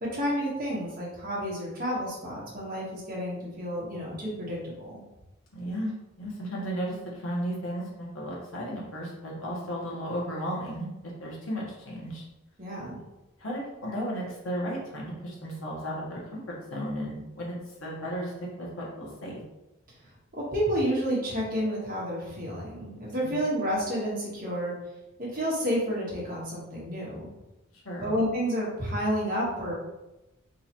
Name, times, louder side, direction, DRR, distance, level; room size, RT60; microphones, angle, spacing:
voice 1, 0.0-5.0 12.6-13.0 20.3-24.7 25.2-27.3 28.0-29.7, equal, 40° right, -5 dB, 1.3 m, -30 dB
voice 2, 5.5-5.9 6.2-10.9 11.2-12.2 13.4-19.4 23.2-23.3 27.8-28.1, equal, 75° left, -4 dB, 1.2 m, -34 dB
3.8 x 3.2 x 3.0 m, 0.96 s
head